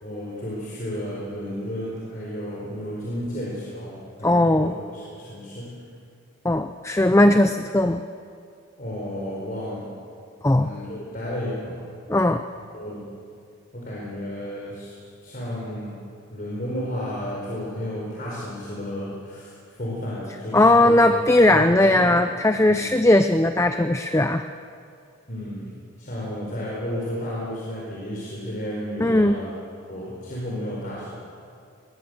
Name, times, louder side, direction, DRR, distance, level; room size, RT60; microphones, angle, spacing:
voice 1, 0.0-5.8 8.8-9.9 10.5-11.8 12.7-13.1 13.7-14.9 15.2-16.0 16.3-22.1 22.7-22.8 25.3-29.5 29.9-31.1, equal, 40° left, -5 dB, 4.5 m, -32 dB
voice 2, 4.2-4.7 6.4-8.0 10.4-10.7 12.1-12.4 20.5-24.4 29.0-29.4, left 1 dB, 15° left, 8 dB, 0.5 m, -18 dB
21.0 x 19.5 x 7.8 m, 2.4 s
head